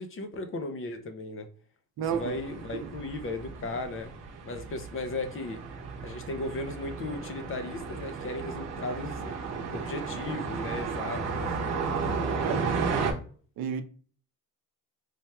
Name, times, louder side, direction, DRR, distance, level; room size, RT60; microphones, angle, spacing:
voice 1, 0.0-1.5 2.1-4.1 4.5-5.6 6.0-9.3 9.7-11.7 12.3-12.8, left 2 dB, 35° left, 0.5 m, -36 dB
sound 1, 2.0-13.1, right 5 dB, 50° right, 0.9 m, -34 dB
voice 2, 2.0-2.3 2.8-2.9 12.4-12.7 13.6-13.8, right 8 dB, 80° right, 0.6 m, -31 dB
3.3 x 2.3 x 4.2 m
cardioid pair, 165°, 35 cm